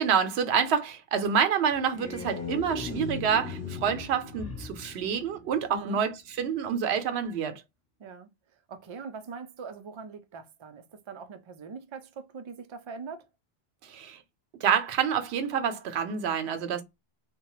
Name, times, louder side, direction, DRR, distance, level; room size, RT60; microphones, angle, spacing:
voice 1, 0.0-7.6 13.9-14.2 14.6-16.8, right 7 dB, 85° right, 0.9 m, -27 dB
sound 1, 1.7-5.9, left 5 dB, 15° left, 0.8 m, -38 dB
voice 2, 5.7-6.0 8.0-8.3 8.7-13.3, right 5 dB, 55° right, 0.3 m, -42 dB
2.8 x 2.1 x 3.0 m
omnidirectional pair, 1.1 m